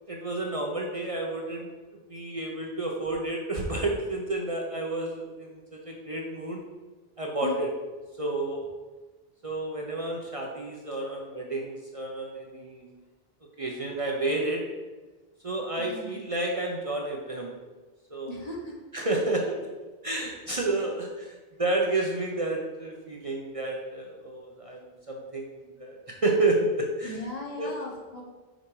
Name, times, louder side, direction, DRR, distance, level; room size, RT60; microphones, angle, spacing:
voice 1, 0.1-1.7 2.1-5.5 5.9-6.6 7.2-7.7 8.2-8.6 9.4-12.9 13.6-14.6 15.4-17.5 18.1-18.3 18.9-19.6 20.0-21.1 21.6-24.8 25.1-25.5 25.8-27.1 27.6-27.7, right 2 dB, 35° right, -1 dB, 0.9 m, -30 dB
voice 2, 15.8-16.2 18.3-19.2 20.8-20.9 21.2-21.3 27.0-28.2, left 2 dB, 40° left, -1 dB, 1.3 m, -38 dB
6.2 x 5.1 x 4.7 m, 1.3 s
omnidirectional pair, 1.0 m